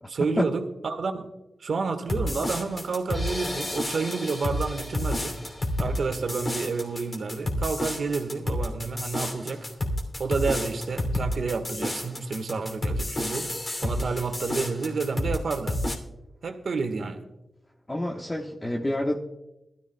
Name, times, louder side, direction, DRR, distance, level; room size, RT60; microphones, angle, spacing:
voice 1, 0.1-1.3 1.6-5.4 5.8-9.7 10.2-13.5 13.8-15.8 16.4-17.2, right 4 dB, 70° right, 6 dB, 1.5 m, -30 dB
sound 1, 2.1-16.0, left 1 dB, 40° left, 2.8 m, -30 dB
voice 2, 17.9-19.2, left 1 dB, 20° left, 0 dB, 1.2 m, -28 dB
21.0 x 13.5 x 2.3 m, 0.96 s
cardioid pair, 65°, 0 cm